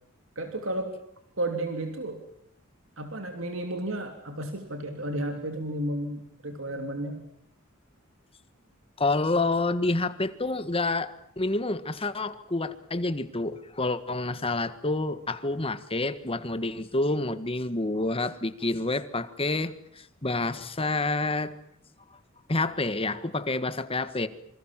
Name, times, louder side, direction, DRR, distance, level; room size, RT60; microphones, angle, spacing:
voice 1, 0.3-0.9 1.4-2.2 3.0-7.2, right 1 dB, 70° right, 5 dB, 3.1 m, -32 dB
voice 2, 9.0-21.5 22.5-24.3, left 2 dB, 25° left, 12 dB, 1.5 m, -28 dB
27.5 x 25.0 x 7.6 m, 0.70 s
head